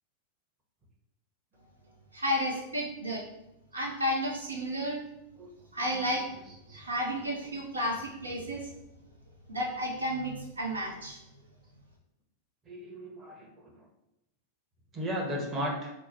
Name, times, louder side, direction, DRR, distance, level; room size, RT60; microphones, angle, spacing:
voice 1, 2.1-3.2 3.7-5.0 5.7-6.4 6.7-8.7 9.5-11.2, equal, 75° right, 0 dB, 0.6 m, -32 dB
voice 2, 5.8-6.4 12.7-13.7 14.9-15.9, equal, 25° right, 0 dB, 0.9 m, -36 dB
4.4 x 2.1 x 4.3 m, 0.88 s
figure-of-eight pair, 90°, 0 cm